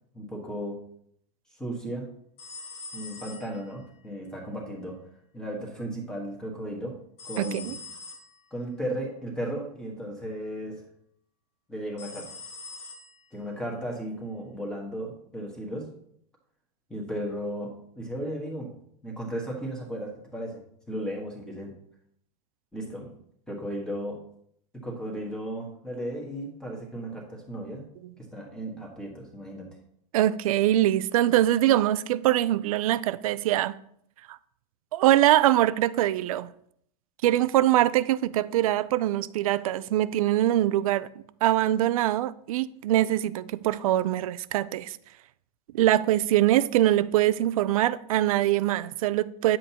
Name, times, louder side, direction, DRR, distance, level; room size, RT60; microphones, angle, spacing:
voice 1, 0.1-0.8 1.6-2.1 2.9-5.0 5.3-6.9 7.2-7.7 8.5-10.8 11.7-12.3 13.3-15.9 16.9-18.7 19.0-20.6 20.9-21.7 22.7-23.1 23.5-24.2 24.8-27.9 28.2-29.7, right 1 dB, 5° left, 1.3 m, -35 dB
sound 1, 2.4-4.0 7.2-8.4 12.0-13.3, left 4 dB, 25° left, 1.1 m, -43 dB
voice 2, 7.4-7.7 30.1-33.7 34.3-34.4 34.9-36.5 37.2-41.1 41.4-45.0 45.7-49.6, right 13 dB, 60° right, 0.4 m, -23 dB
9.4 x 7.5 x 2.9 m
supercardioid pair, 175°, 21 cm